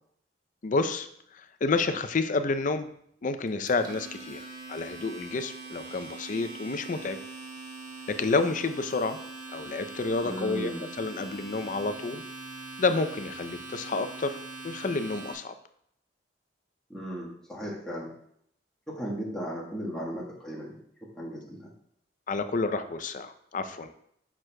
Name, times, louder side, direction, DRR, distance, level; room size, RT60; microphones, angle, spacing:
voice 1, 0.6-1.1 1.3-2.9 3.2-4.4 4.7-7.2 8.1-9.2 9.5-12.2 12.8-14.4 14.6-15.5 22.3-23.9, left 3 dB, 45° left, 10 dB, 0.5 m, -29 dB
Domestic sounds home sounds, 3.5-15.3, right 3 dB, 45° right, 1.5 m, -42 dB
voice 2, 10.2-10.9 16.9-18.1 18.9-20.8 21.1-21.7, equal, 5° left, -6 dB, 1.3 m, -36 dB
9.5 x 6.2 x 2.2 m, 0.70 s
head